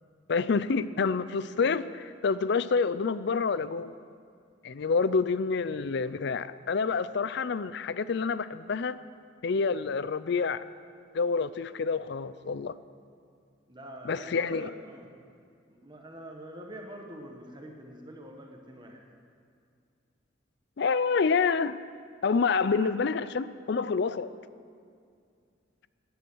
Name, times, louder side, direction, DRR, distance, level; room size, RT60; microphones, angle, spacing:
voice 1, 0.3-3.9 4.6-9.0 9.4-10.6 11.1-12.7 14.0-14.7 20.8-21.8 22.2-24.3, left 5 dB, 60° left, 15 dB, 0.5 m, -28 dB
voice 2, 13.7-15.1 15.7-19.0 22.6-22.9, right 1 dB, 25° right, 2 dB, 1.3 m, -45 dB
16.5 x 10.5 x 6.3 m, 2.3 s
head